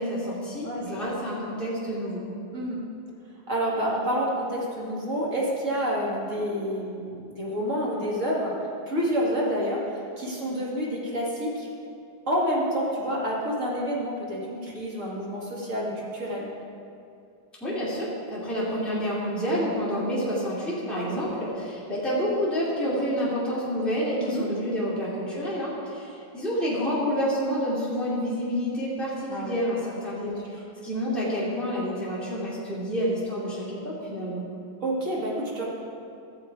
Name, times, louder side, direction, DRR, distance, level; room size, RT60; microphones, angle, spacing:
voice 1, 0.0-2.2 17.6-30.4 30.8-34.4, equal, ahead, -9 dB, 2.9 m, -28 dB
voice 2, 0.6-1.1 2.5-2.8 3.5-8.6 8.9-11.7 12.3-16.5 20.9-21.3 24.2-24.4 29.3-29.6 30.2-30.6 34.8-35.7, equal, 40° right, -5 dB, 2.4 m, -28 dB
15.0 x 7.1 x 4.8 m, 2.5 s
omnidirectional pair, 2.1 m